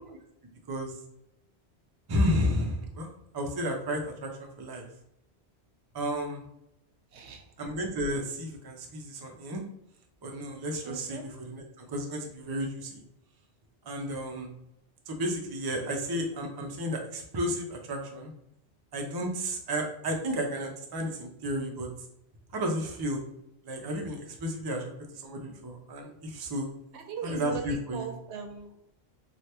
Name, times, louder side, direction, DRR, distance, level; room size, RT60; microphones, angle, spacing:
voice 1, 2.1-4.8 5.9-6.4 7.6-9.6 10.2-13.0 13.9-14.5 15.1-18.3 18.9-21.9 22.5-23.2 23.7-26.7 27.2-28.1, equal, 35° right, 2 dB, 0.3 m, -32 dB
voice 2, 7.1-7.4 10.8-11.2 26.9-28.8, right 7 dB, 90° right, 4 dB, 0.9 m, -39 dB
3.2 x 2.3 x 2.8 m, 0.79 s
omnidirectional pair, 1.1 m